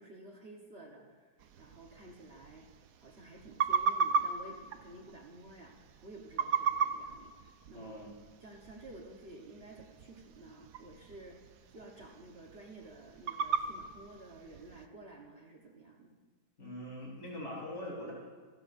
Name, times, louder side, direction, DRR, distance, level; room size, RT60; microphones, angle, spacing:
voice 1, 0.0-2.7 3.0-8.0 8.4-11.4 11.7-16.2, right 2 dB, 40° right, -1 dB, 1.4 m, -52 dB
sound 1, 1.4-14.9, right 6 dB, 65° right, 1.0 m, -37 dB
voice 2, 7.7-8.1 16.6-18.1, left 1 dB, 60° left, -5 dB, 4.9 m, -42 dB
25.5 x 12.5 x 2.6 m, 1.5 s
omnidirectional pair, 1.8 m